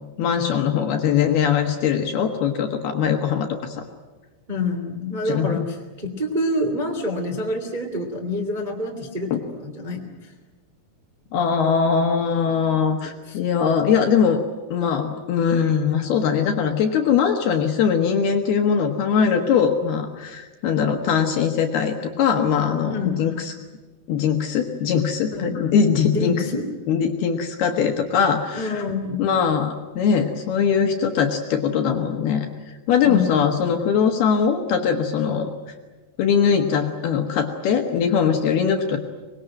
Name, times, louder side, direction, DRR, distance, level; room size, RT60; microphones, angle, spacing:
voice 1, 0.2-3.8 5.3-5.7 9.3-9.4 11.3-14.4 14.7-23.5 24.1-26.4 26.9-28.8 29.2-35.5 36.2-39.0, left 7 dB, 65° left, 4 dB, 2.9 m, -21 dB
voice 2, 4.5-10.3 13.3-13.4 22.9-23.2 25.3-25.5 26.1-26.6 28.5-29.2 33.0-33.4, left 2 dB, 15° right, 2 dB, 1.4 m, -27 dB
25.0 x 21.5 x 9.1 m, 1.2 s
omnidirectional pair, 6.0 m